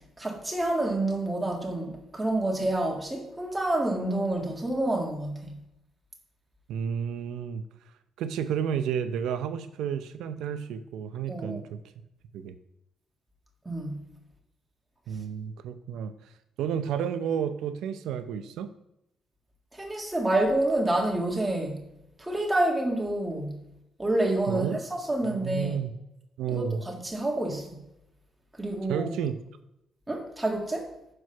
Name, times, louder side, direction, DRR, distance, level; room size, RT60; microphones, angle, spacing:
voice 1, 0.2-5.5 11.3-11.6 13.6-13.9 19.7-21.8 22.2-23.6 24.0-25.8 26.5-27.7 28.6-29.1 30.1-30.9, right 1 dB, 15° right, 1.8 m, -28 dB
voice 2, 6.7-7.6 8.2-11.8 12.3-12.5 15.1-16.1 16.6-18.7 24.5-24.8 25.2-25.9 26.4-26.8 28.9-29.4, right 8 dB, 85° right, 0.5 m, -31 dB
6.2 x 4.8 x 5.6 m
cardioid pair, 90°, 0 cm